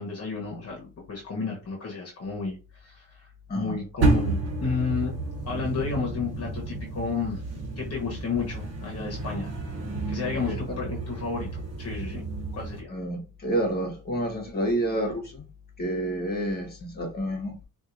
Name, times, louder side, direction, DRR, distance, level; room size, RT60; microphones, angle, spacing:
voice 1, 0.0-3.3 3.5-4.3 4.6-5.1 5.5-7.4 7.8-9.5 10.1-12.2 12.5-12.9, left 5 dB, 45° left, 1.1 m, -32 dB
sound 1, 4.0-12.8, right 3 dB, 45° right, 1.3 m, -30 dB
voice 2, 10.3-10.9 12.9-15.4 15.8-17.6, right 1 dB, 30° left, 1.3 m, -29 dB
4.4 x 2.6 x 2.6 m
cardioid pair, 125°, 34 cm